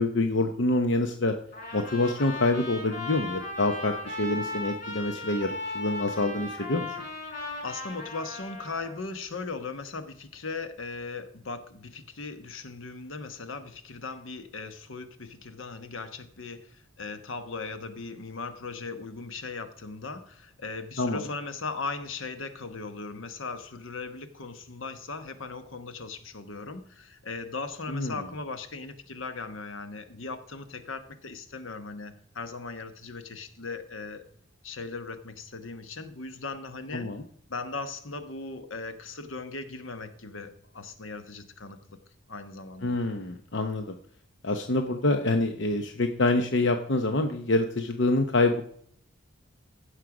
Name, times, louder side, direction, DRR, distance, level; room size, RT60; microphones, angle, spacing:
voice 1, 0.0-1.3 1.7-6.9 21.0-21.2 27.9-28.1 36.9-37.2 42.8-43.8 44.4-48.6, left 2 dB, 60° left, 6 dB, 0.8 m, -26 dB
Trumpet, 1.5-9.0, left 2 dB, 40° left, 4.4 m, -37 dB
voice 2, 7.6-34.2 34.6-37.1 37.5-42.0 42.3-43.0, left 4 dB, 75° left, 9 dB, 1.1 m, -38 dB
15.5 x 6.5 x 4.9 m, 0.64 s
head